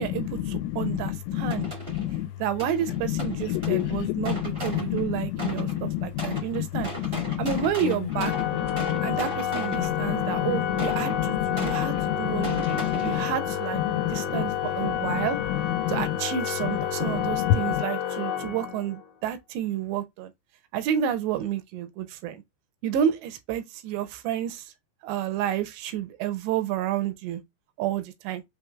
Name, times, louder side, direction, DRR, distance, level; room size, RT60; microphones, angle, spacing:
voice 1, 0.0-1.7 2.4-6.9 7.4-8.3 9.0-15.4 15.9-20.3 20.7-22.4 22.8-24.7 25.0-27.4 27.8-28.4, right 9 dB, 80° right, 2.7 m, -30 dB
voice 2, 0.6-1.0 1.3-2.3 3.5-7.4 7.8-7.9 8.6-9.2 9.7-10.5 10.9-13.3 13.9-14.5 14.8-15.2 15.8-16.1 17.0-17.8, left 13 dB, 90° left, 2.9 m, -29 dB
sound 1, 1.5-2.2 2.6-5.8 6.2-10.1 10.8-13.2, right 2 dB, 45° right, 0.7 m, -37 dB
Organ, 8.1-19.1, left 9 dB, 50° left, 2.3 m, -30 dB
6.9 x 3.3 x 2.3 m
omnidirectional pair, 5.2 m